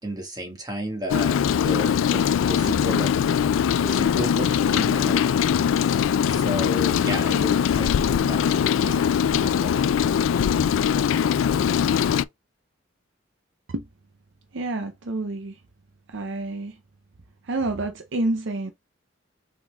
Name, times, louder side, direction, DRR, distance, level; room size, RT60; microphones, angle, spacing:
voice 1, 0.0-3.1 3.8-5.2 6.3-7.9 8.2-9.1, equal, 20° right, 1.6 m, -33 dB
Rain, 1.1-12.2, left 8 dB, 75° left, 0.3 m, -21 dB
voice 2, 14.5-15.6 16.1-16.8 17.4-18.7, right 2 dB, 65° right, 0.6 m, -28 dB
6.1 x 3.7 x 2.3 m
head